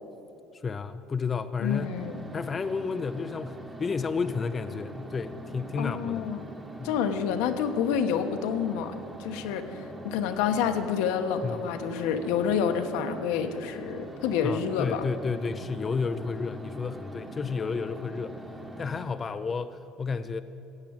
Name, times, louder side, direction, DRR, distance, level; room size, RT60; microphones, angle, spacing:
voice 1, 0.5-1.9 2.3-6.2 6.8-6.9 11.4-11.7 14.4-18.5 18.8-20.4, left 5 dB, 20° left, 10 dB, 0.4 m, -31 dB
voice 2, 1.6-2.2 5.8-6.4 6.8-15.1, left 7 dB, 85° left, 7 dB, 1.1 m, -28 dB
sound 1, 1.6-19.1, right 1 dB, 10° right, 1.2 m, -43 dB
15.0 x 8.5 x 8.8 m, 2.9 s
cardioid pair, 150°, 0 cm